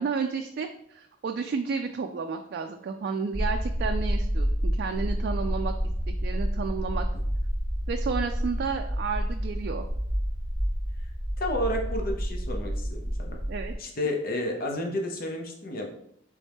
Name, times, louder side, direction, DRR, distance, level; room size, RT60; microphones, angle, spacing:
voice 1, 0.0-5.7 6.2-7.1 7.9-9.8 13.5-13.7, right 5 dB, 60° right, 5 dB, 0.3 m, -31 dB
sound 1, 3.3-13.8, equal, 10° left, 0.7 m, -29 dB
voice 2, 11.4-13.4 13.8-16.0, left 1 dB, 55° left, 2 dB, 0.8 m, -31 dB
4.1 x 3.5 x 3.5 m, 0.71 s
head